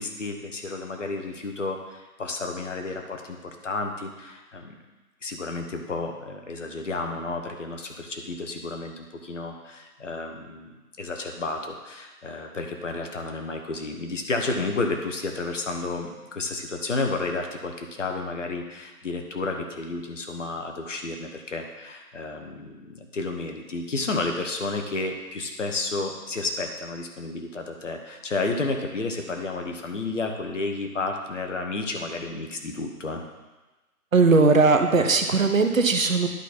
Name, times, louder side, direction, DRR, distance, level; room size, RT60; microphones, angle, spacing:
voice 1, 0.0-4.8 5.2-33.2, left 3 dB, 50° left, 4 dB, 1.1 m, -31 dB
voice 2, 34.1-36.3, right 3 dB, 55° right, 6 dB, 0.9 m, -19 dB
11.5 x 4.2 x 4.2 m, 1.1 s
figure-of-eight pair, 155°, 47 cm